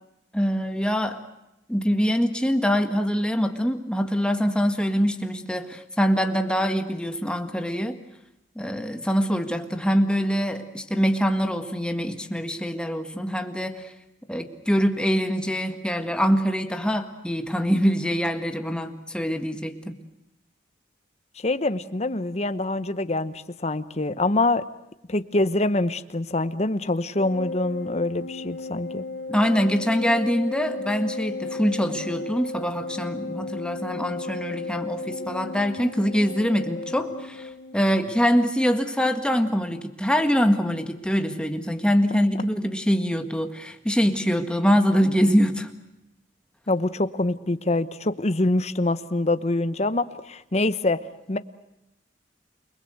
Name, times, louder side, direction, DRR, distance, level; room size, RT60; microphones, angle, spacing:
voice 1, 0.3-1.2 1.7-8.0 8.6-13.9 14.3-20.0 29.3-45.7, equal, 5° left, 6 dB, 1.8 m, -24 dB
voice 2, 21.4-24.6 25.1-29.0 46.7-51.0 51.3-51.4, left 2 dB, 40° left, 12 dB, 1.0 m, -25 dB
Organ, 27.1-37.9, left 3 dB, 65° left, 3.2 m, -34 dB
29.0 x 20.5 x 7.9 m, 0.88 s
head